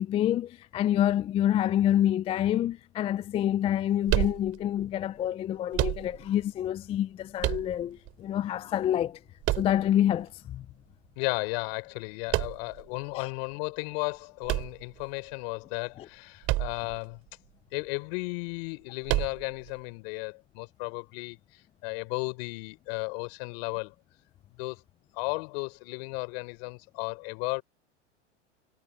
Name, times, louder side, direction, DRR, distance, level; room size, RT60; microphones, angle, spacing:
voice 1, 0.0-9.2 9.6-10.7 13.1-13.3 16.0-16.1, left 11 dB, 15° left, 0.4 m, -27 dB
sound 1, 4.1-4.9 5.7-6.4 7.4-8.1 9.4-10.2 12.3-12.9 14.4-15.3 16.4-17.0 17.3-17.4 19.1-19.7, right 18 dB, 40° right, 3.3 m, -29 dB
voice 2, 11.2-17.2 17.7-23.9 24.6-24.8 25.1-27.6, left 33 dB, 55° left, 4.2 m, -34 dB
hypercardioid pair, 110°, 35 cm